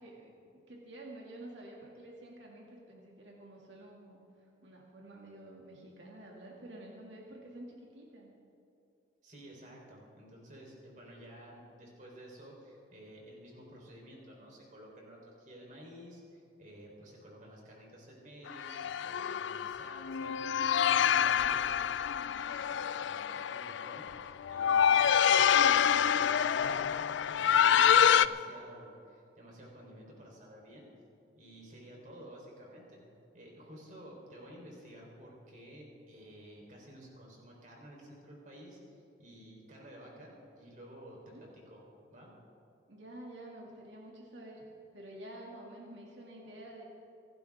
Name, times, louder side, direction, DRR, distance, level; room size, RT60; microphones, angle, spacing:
voice 1, 0.0-4.2 4.6-8.3 41.3-41.4 42.9-44.6 44.9-46.8, right 1 dB, 90° right, -2 dB, 2.3 m, -49 dB
voice 2, 9.2-26.8 27.3-30.9 31.4-33.0 33.3-41.8 42.1-42.3, equal, 45° right, -2 dB, 3.9 m, -52 dB
sound 1, 18.5-28.3, left 8 dB, 90° left, 0.4 m, -27 dB
26.5 x 12.0 x 3.6 m, 2.7 s
head